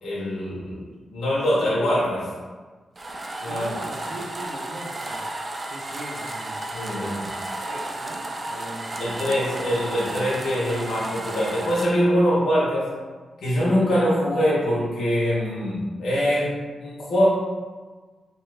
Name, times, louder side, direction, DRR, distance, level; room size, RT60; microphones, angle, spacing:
voice 1, 0.0-2.3 3.4-3.6 6.7-7.3 9.0-12.9 13.4-16.6 16.8-17.3, equal, 75° left, -8 dB, 0.9 m, -23 dB
sound 1, 3.0-11.9, right 1 dB, 30° right, 0.3 m, -33 dB
voice 2, 3.5-5.3 5.6-6.7 7.4-9.3, right 2 dB, 80° right, -1 dB, 0.5 m, -39 dB
2.8 x 2.3 x 3.2 m, 1.4 s
cardioid pair, 100°, 0 cm